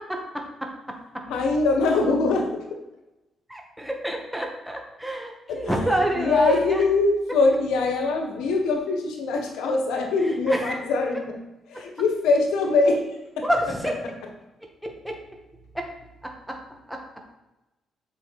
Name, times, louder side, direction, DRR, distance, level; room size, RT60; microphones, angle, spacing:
voice 1, 1.3-2.8 5.5-11.4 11.7-13.1 13.4-13.5 14.0-14.1, left 3 dB, 85° left, 3 dB, 1.3 m, -23 dB
voice 2, 3.5-6.8 10.5-10.7 13.4-13.9 15.0-15.1 16.9-17.0, equal, 5° right, 1 dB, 1.4 m, -27 dB
7.3 x 5.0 x 4.1 m, 1.0 s
cardioid pair, 80°, 0 cm